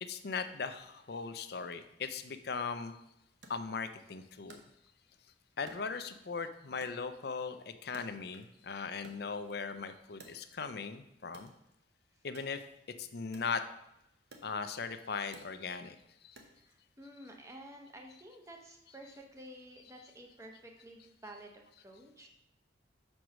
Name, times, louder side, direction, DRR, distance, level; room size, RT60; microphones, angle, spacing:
voice 1, 0.0-2.9 3.5-4.6 5.6-11.5 12.2-12.6 13.0-13.6 14.4-16.0 16.2-16.4 17.2-17.3 19.0-19.2, left 5 dB, 55° left, 10 dB, 0.5 m, -39 dB
Wood, 3.4-5.2 5.7-6.4 6.8-8.6 8.9-10.8 11.3-16.8, right 2 dB, 60° right, 0.9 m, -59 dB
voice 2, 16.3-22.3, right 1 dB, 15° right, 2 dB, 0.8 m, -52 dB
5.2 x 4.6 x 6.1 m, 0.85 s
head